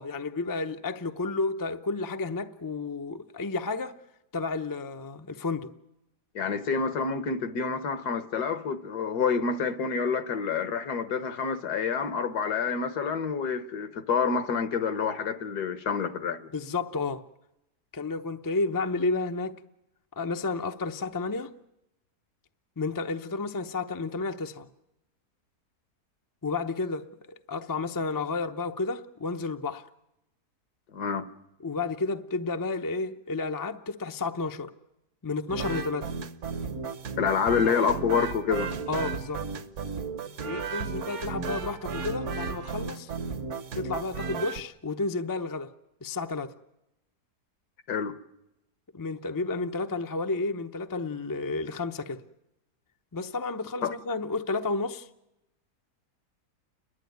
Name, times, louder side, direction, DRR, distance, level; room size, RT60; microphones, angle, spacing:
voice 1, 0.0-4.0 4.3-5.7 16.5-17.2 17.9-19.6 20.2-21.5 22.8-24.7 26.4-29.9 31.6-34.7 35.2-36.1 38.9-39.4 40.4-43.1 43.7-45.7 46.0-46.5 48.9-52.2 53.1-55.1, left 3 dB, 25° left, 0.4 m, -31 dB
voice 2, 6.4-16.5 30.9-31.3 37.2-38.7 47.9-48.2 53.8-53.9, left 6 dB, 75° left, 1.6 m, -28 dB
sound 1, 35.5-44.6, right 5 dB, 50° right, 1.2 m, -34 dB
29.5 x 11.5 x 9.3 m
omnidirectional pair, 1.7 m